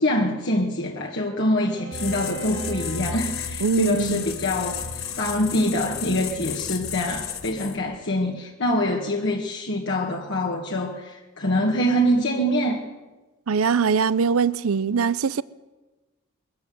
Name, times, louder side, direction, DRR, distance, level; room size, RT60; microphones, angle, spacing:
voice 1, 0.0-12.8, equal, 55° left, 1.9 m, -25 dB
Bowed string instrument, 1.6-6.7, right 5 dB, 60° right, 2.1 m, -42 dB
sound 1, 1.9-7.9, left 8 dB, 75° left, 1.7 m, -33 dB
voice 2, 3.6-4.2 13.5-15.4, right 5 dB, 80° right, 0.6 m, -22 dB
22.5 x 14.5 x 9.3 m
head